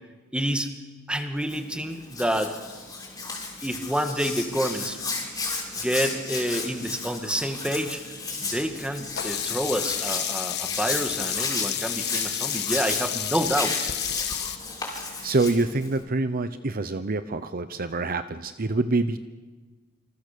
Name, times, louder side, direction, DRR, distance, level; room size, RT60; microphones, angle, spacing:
voice 1, 0.3-0.7 1.1-2.5 3.6-5.0 5.8-8.0 8.4-14.0, equal, 5° right, 6 dB, 2.0 m, -28 dB
Hands, 1.4-16.0, left 3 dB, 20° left, 6.1 m, -33 dB
Sink (filling or washing), 9.2-14.6, left 10 dB, 55° left, 1.5 m, -30 dB
voice 2, 15.2-19.2, right 3 dB, 45° right, 11 dB, 0.9 m, -26 dB
28.0 x 26.5 x 6.9 m, 1.3 s
head